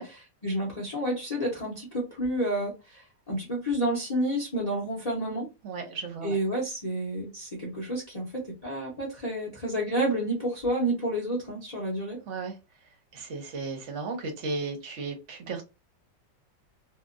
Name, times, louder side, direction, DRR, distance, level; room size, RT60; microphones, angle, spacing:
voice 1, 0.0-5.5 6.2-12.2, right 1 dB, 40° left, 0.5 m, -30 dB
voice 2, 5.6-6.4 12.3-12.6 13.1-15.6, right 3 dB, 55° right, 0.9 m, -35 dB
2.8 x 2.4 x 2.4 m
omnidirectional pair, 1.9 m